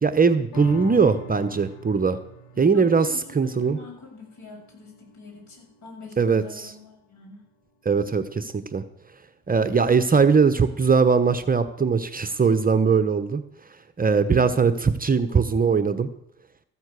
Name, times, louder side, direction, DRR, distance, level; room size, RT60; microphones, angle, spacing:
voice 1, 0.0-2.2 2.6-3.8 6.2-6.7 7.8-8.8 9.5-13.4 14.0-16.1, right 5 dB, 25° right, 9 dB, 0.9 m, -20 dB
sound 1, 0.5-7.2 7.7-7.8, right 2 dB, 75° left, 1.9 m, -43 dB
voice 2, 2.5-7.4, left 4 dB, 55° left, -1 dB, 7.2 m, -44 dB
14.0 x 7.2 x 8.2 m, 0.75 s
cardioid pair, 80°, 33 cm